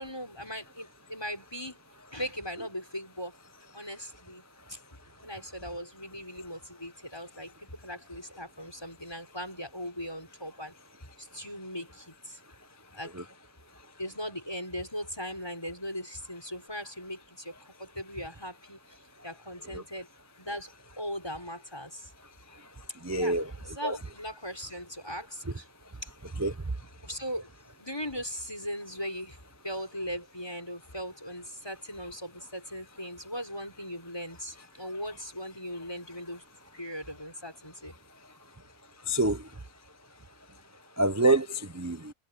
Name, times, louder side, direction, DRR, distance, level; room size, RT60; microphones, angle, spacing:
voice 1, 0.0-1.8 2.1-3.4 3.7-4.4 4.7-10.7 11.2-12.4 12.9-13.3 14.0-20.1 20.4-20.7 21.0-22.1 23.1-25.7 26.0-26.1 26.8-27.5 27.8-36.4 36.7-37.9, equal, 15° left, 5.9 m, -39 dB
voice 2, 23.0-23.5 23.8-23.9 26.4-26.5 39.1-39.4 41.0-42.1, right 2 dB, 20° right, 0.4 m, -26 dB
omnidirectional pair, 1.5 m